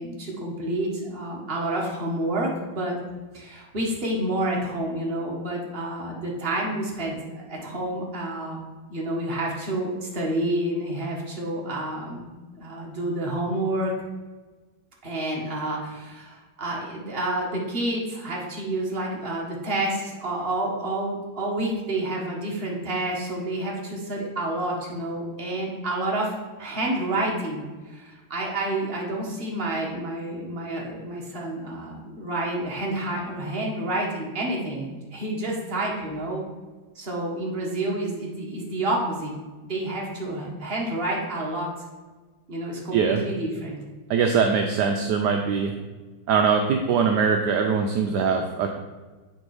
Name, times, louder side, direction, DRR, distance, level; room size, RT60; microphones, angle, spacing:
voice 1, 0.0-3.0 3.3-7.2 7.5-8.6 8.9-12.2 12.5-13.9 15.0-36.4 36.9-39.3 39.6-41.7 42.5-43.8, right 1 dB, 30° right, -2 dB, 1.5 m, -29 dB
voice 2, 42.9-43.2 44.1-45.7 46.3-48.7, right 6 dB, 70° right, 4 dB, 1.0 m, -22 dB
7.9 x 4.5 x 4.8 m, 1.3 s
omnidirectional pair, 2.3 m